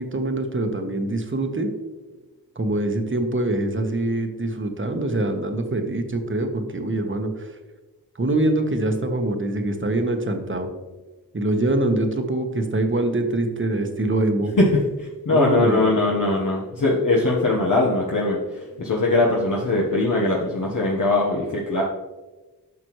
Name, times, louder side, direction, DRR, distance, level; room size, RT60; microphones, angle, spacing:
voice 1, 0.0-1.7 2.5-7.6 8.2-10.7 11.3-14.5 15.3-15.8, right 2 dB, 35° right, 5 dB, 1.2 m, -24 dB
voice 2, 14.6-21.8, left 2 dB, 60° left, -4 dB, 1.3 m, -21 dB
11.0 x 6.1 x 3.1 m, 1.2 s
wide cardioid pair, 65°, 35 cm